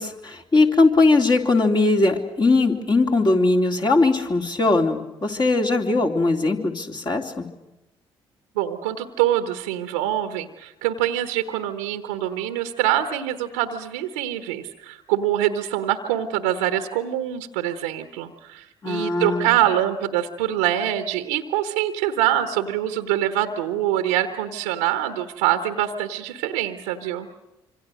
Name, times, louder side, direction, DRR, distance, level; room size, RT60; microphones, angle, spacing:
voice 1, 0.0-7.4 18.8-19.5, left 3 dB, 35° left, 2 dB, 3.2 m, -20 dB
voice 2, 8.5-27.3, right 12 dB, 75° right, 9 dB, 1.2 m, -24 dB
26.5 x 25.5 x 6.4 m, 0.97 s
figure-of-eight pair, 45°, 13 cm